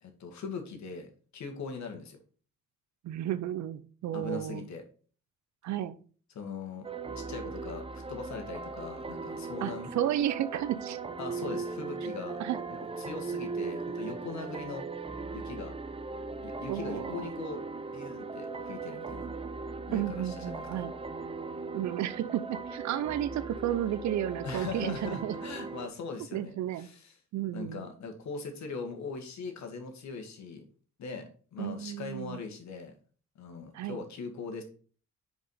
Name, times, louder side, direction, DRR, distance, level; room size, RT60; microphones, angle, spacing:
voice 1, 0.0-2.2 4.1-4.8 6.3-6.9 7.2-9.9 11.2-12.4 12.7-14.8 15.3-15.7 16.4-17.6 17.9-19.2 19.9-20.9 24.4-27.2 27.5-30.6 31.0-32.9 33.4-34.6, left 4 dB, 65° left, 5 dB, 1.8 m, -41 dB
voice 2, 3.0-4.6 5.6-5.9 9.6-11.0 12.4-12.6 16.7-17.3 19.9-20.9 21.7-25.3 26.3-26.9 27.3-27.8 31.6-32.4 33.7-34.0, right 12 dB, 70° right, 14 dB, 0.7 m, -32 dB
sound 1, 6.8-25.9, right 4 dB, 20° right, 0.6 m, -38 dB
5.1 x 5.1 x 5.5 m, 0.41 s
cardioid pair, 90°, 30 cm